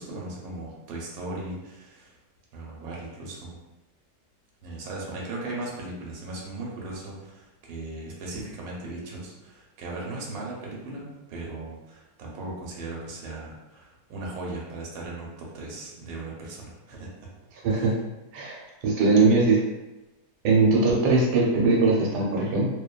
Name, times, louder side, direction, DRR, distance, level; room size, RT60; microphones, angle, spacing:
voice 1, 0.0-2.1 2.5-3.6 4.6-17.1 17.7-17.9, right 2 dB, 70° right, -3 dB, 1.1 m, -37 dB
voice 2, 17.6-17.9 18.3-18.6 18.8-19.6 20.4-22.7, right 3 dB, 90° right, -2 dB, 1.2 m, -20 dB
2.7 x 2.2 x 2.2 m, 1.0 s
omnidirectional pair, 1.7 m